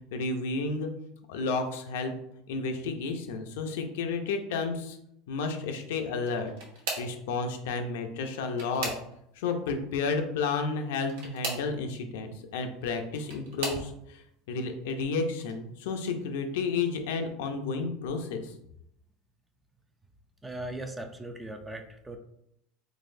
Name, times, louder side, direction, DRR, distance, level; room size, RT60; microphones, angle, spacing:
voice 1, 0.1-0.9 1.3-2.1 2.5-5.0 5.3-6.5 7.0-8.9 9.4-14.2 14.5-18.5, left 4 dB, 85° left, 5 dB, 0.6 m, -31 dB
sound 1, 6.2-7.2 8.2-9.4 11.0-11.7 12.8-13.9 14.6-15.0 15.4-15.5 16.9-17.0, right 3 dB, 85° right, 1.2 m, -37 dB
voice 2, 20.4-22.2, right 1 dB, 10° right, 6 dB, 0.4 m, -39 dB
3.9 x 3.0 x 2.6 m, 0.76 s
supercardioid pair, 130°, 0 cm